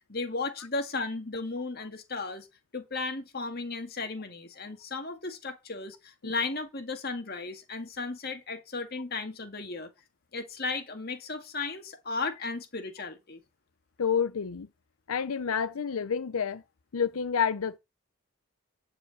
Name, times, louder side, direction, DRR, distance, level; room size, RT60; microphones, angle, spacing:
voice 1, 0.1-2.5 2.7-9.9 10.3-13.4, left 3 dB, 45° left, 2.1 m, -35 dB
voice 2, 14.0-14.7 15.1-16.6 16.9-17.8, left 7 dB, 90° left, 0.6 m, -29 dB
12.0 x 5.0 x 8.6 m
head